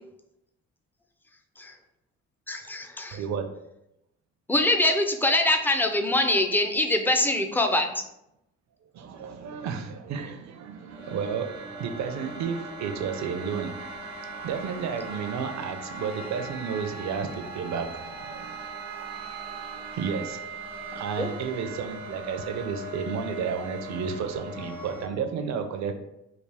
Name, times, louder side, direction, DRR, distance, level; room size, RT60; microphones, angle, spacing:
voice 1, 2.5-3.2 4.5-7.9 21.2-21.3, left 1 dB, 5° left, 5 dB, 0.4 m, -24 dB
voice 2, 3.1-3.5 8.9-13.8 14.3-18.7 19.9-20.4 20.9-25.9, right 6 dB, 65° right, 7 dB, 0.6 m, -32 dB
sound 1, 10.5-25.1, right 2 dB, 90° right, 1.0 m, -39 dB
3.5 x 2.4 x 3.4 m, 0.84 s
cardioid pair, 90°, 30 cm